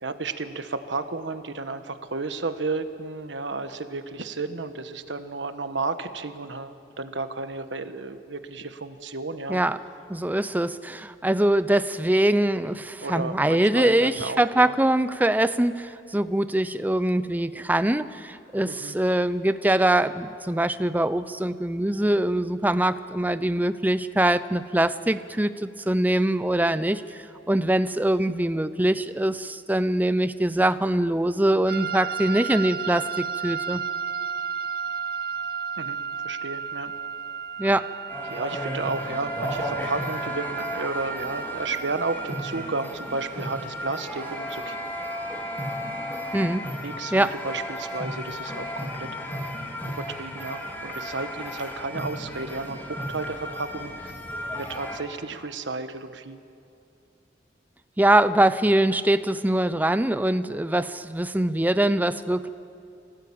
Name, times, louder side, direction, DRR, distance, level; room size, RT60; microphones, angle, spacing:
voice 1, 0.0-9.6 13.0-14.7 18.7-18.9 35.8-36.0 36.2-36.9 38.3-44.8 46.8-49.1 50.0-54.1 54.5-56.4, right 3 dB, 85° right, 10 dB, 1.3 m, -32 dB
voice 2, 10.1-33.8 37.6-37.9 46.3-46.7 47.1-47.3 58.0-62.5, right 1 dB, 10° right, 13 dB, 0.6 m, -23 dB
sound 1, 31.7-42.8, right 6 dB, 55° right, 0.7 m, -33 dB
sound 2, 38.1-55.0, equal, 10° left, 2.8 m, -34 dB
25.0 x 17.5 x 8.7 m, 2.5 s
head